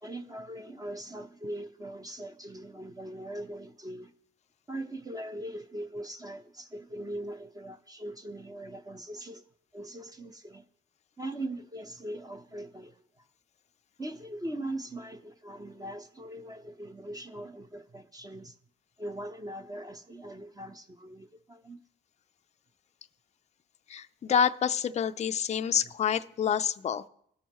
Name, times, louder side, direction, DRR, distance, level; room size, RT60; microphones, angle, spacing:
voice 1, 0.0-4.1 4.7-9.4 9.7-10.6 11.2-13.2 14.0-18.6 19.0-21.8, right 1 dB, 20° right, 0.7 m, -40 dB
voice 2, 23.9-27.1, left 8 dB, 35° left, 0.4 m, -28 dB
18.5 x 6.3 x 3.0 m
cardioid pair, 90°, 20 cm